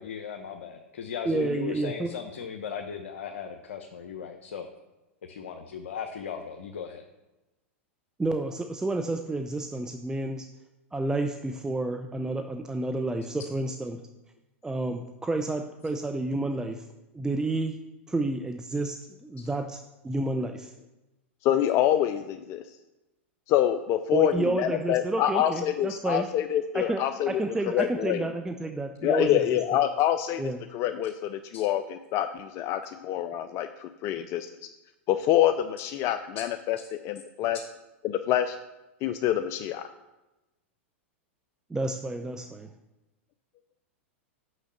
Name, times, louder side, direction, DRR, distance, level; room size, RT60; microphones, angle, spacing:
voice 1, 0.0-4.7 5.3-7.0 19.4-19.5 31.5-31.6 36.4-36.5, left 7 dB, 80° left, 3 dB, 0.9 m, -37 dB
voice 2, 1.2-2.1 8.2-10.4 10.9-14.0 14.6-16.8 17.1-17.7 18.1-19.0 19.2-20.7 24.1-26.3 26.7-29.4 30.4-30.6 41.7-42.7, right 2 dB, 10° right, 6 dB, 0.6 m, -30 dB
voice 3, 21.4-22.6 23.5-28.3 29.0-30.4 30.7-34.5 35.1-37.6 38.0-38.6 39.0-39.8, left 11 dB, 45° left, 9 dB, 0.5 m, -26 dB
6.4 x 6.3 x 7.3 m, 1.0 s
hypercardioid pair, 110°, 7 cm